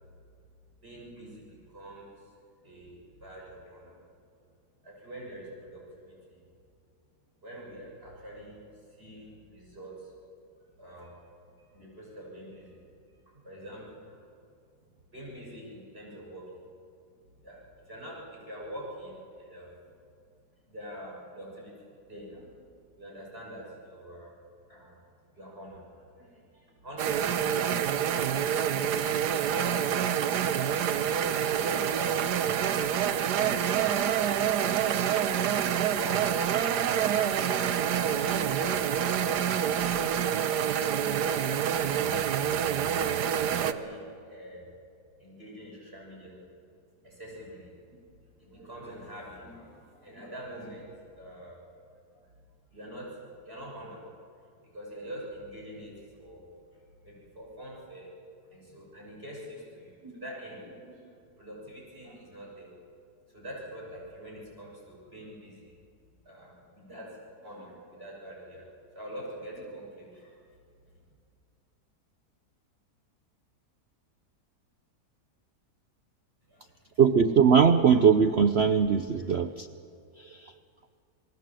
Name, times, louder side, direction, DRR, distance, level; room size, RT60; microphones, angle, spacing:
voice 1, 0.8-2.3 2.6-4.0 4.8-6.4 7.4-8.6 8.9-10.1 10.8-11.2 11.6-12.8 13.3-14.2 14.7-14.8 15.1-16.6 17.4-19.8 20.7-21.7 22.1-22.6 23.0-24.3 24.7-25.0 25.3-28.0 29.4-30.1 30.5-34.5 35.5-39.4 42.1-44.6 45.2-46.4 47.0-48.0 48.4-51.6 52.7-53.1 53.4-54.0 54.6-58.1 58.5-61.1 61.4-62.7 63.3-65.7 66.2-68.7 68.9-70.4 76.5-77.0 78.9-79.3, equal, 35° right, -3 dB, 6.7 m, -45 dB
sound 1, 27.0-43.7, right 9 dB, 75° right, 1.4 m, -27 dB
voice 2, 77.0-79.7, right 6 dB, 55° right, 8 dB, 0.7 m, -20 dB
28.0 x 20.0 x 7.6 m, 2.3 s
omnidirectional pair, 1.8 m